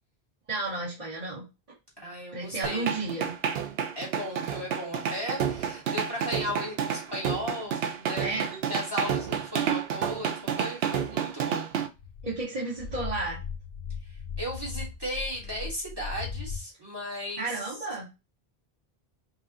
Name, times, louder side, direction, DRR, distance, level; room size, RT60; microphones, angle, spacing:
voice 1, 0.5-1.4 2.3-3.3 8.2-8.5 12.2-13.4 17.4-18.1, right 3 dB, 40° right, -9 dB, 1.6 m, -32 dB
voice 2, 2.0-2.9 3.9-11.7 14.0-17.6, equal, 25° right, -2 dB, 1.4 m, -36 dB
sound 1, 2.6-11.9, right 8 dB, 80° right, 0.8 m, -30 dB
sound 2, 12.0-16.6, left 6 dB, 75° left, 0.9 m, -38 dB
5.5 x 2.4 x 2.7 m, 0.27 s
omnidirectional pair, 1.0 m